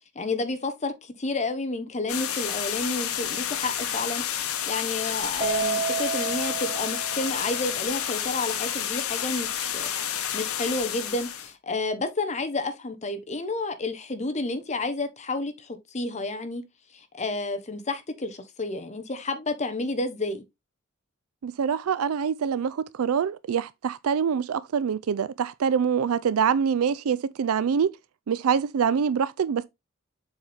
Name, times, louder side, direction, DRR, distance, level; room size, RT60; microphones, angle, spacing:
voice 1, 0.1-16.6 16.9-20.4, left 2 dB, 35° left, 1.0 m, -31 dB
sound 1, 2.1-11.5, left 9 dB, 90° left, 1.0 m, -30 dB
Keyboard (musical), 5.4-7.9, right 5 dB, 25° right, 0.9 m, -31 dB
voice 2, 21.4-27.9 28.3-29.7, right 7 dB, 85° right, 0.4 m, -25 dB
7.1 x 4.3 x 3.4 m
head